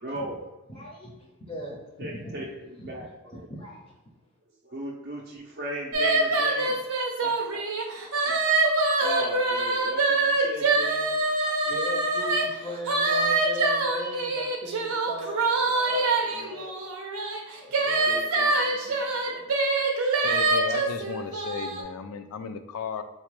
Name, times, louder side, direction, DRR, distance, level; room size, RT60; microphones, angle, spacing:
voice 1, 0.0-0.4 2.0-3.5 4.6-7.7 8.2-8.4 8.9-11.1 15.7-16.1 16.4-16.5 17.8-19.7, right 1 dB, 45° right, -4 dB, 0.5 m, -38 dB
voice 2, 0.7-1.1 1.5-2.5 2.8-2.9 3.2-3.9 11.6-16.1 16.5-16.8 17.5-18.3, equal, 20° left, -2 dB, 0.5 m, -38 dB
sound 1, 5.9-12.4 12.9-21.8, right 3 dB, 85° right, 0.6 m, -25 dB
voice 3, 20.2-23.0, left 6 dB, 85° left, 9 dB, 0.3 m, -34 dB
3.9 x 2.2 x 3.0 m, 1.1 s
head